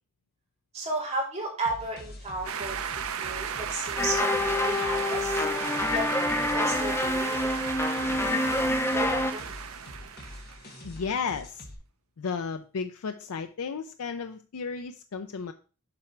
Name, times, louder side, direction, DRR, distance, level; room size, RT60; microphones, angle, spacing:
voice 1, 0.7-5.4 5.9-6.1 6.4-7.5 8.3-8.5 8.9-9.5, right 2 dB, 30° right, -3 dB, 2.8 m, -34 dB
sound 1, 1.6-11.7, left 1 dB, 45° left, 1.9 m, -45 dB
sound 2, 2.4-10.8, right 8 dB, 70° right, 0.6 m, -35 dB
sound 3, 4.0-9.3, left 1 dB, 10° left, 0.4 m, -27 dB
voice 2, 10.8-11.7 12.2-15.5, left 5 dB, 80° left, 8 dB, 0.5 m, -33 dB
7.5 x 4.9 x 4.5 m, 0.35 s
head